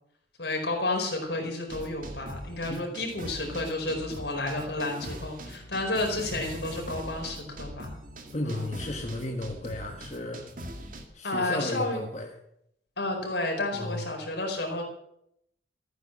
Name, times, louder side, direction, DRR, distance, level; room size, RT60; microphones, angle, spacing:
voice 1, 0.4-8.0 8.4-8.7 11.2-12.0 13.0-14.8, left 2 dB, 75° left, 1 dB, 4.8 m, -31 dB
sound 1, 1.7-11.0, equal, 50° right, 2.1 m, -41 dB
voice 2, 8.3-10.4 11.1-12.3 13.7-14.0, left 1 dB, 40° left, 1 dB, 1.5 m, -34 dB
14.5 x 9.4 x 7.6 m, 0.76 s
head